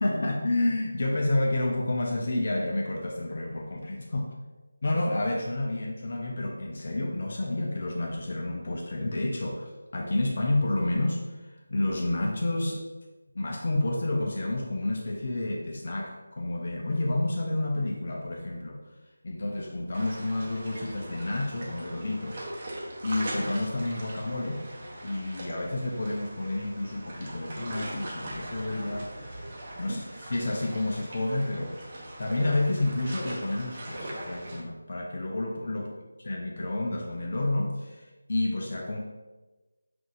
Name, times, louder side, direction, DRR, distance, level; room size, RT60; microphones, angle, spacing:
voice 1, 0.0-4.3 4.8-12.8 13.3-18.8 19.2-22.4 23.0-24.6 25.0-29.3 29.8-30.0 30.3-31.8 32.2-35.9 36.2-39.0, left 2 dB, 50° left, 0 dB, 0.5 m, -30 dB
sound 1, 19.9-34.6, right 1 dB, 40° right, 0.8 m, -40 dB
5.8 x 2.6 x 2.4 m, 1.2 s
figure-of-eight pair, 165°, 0 cm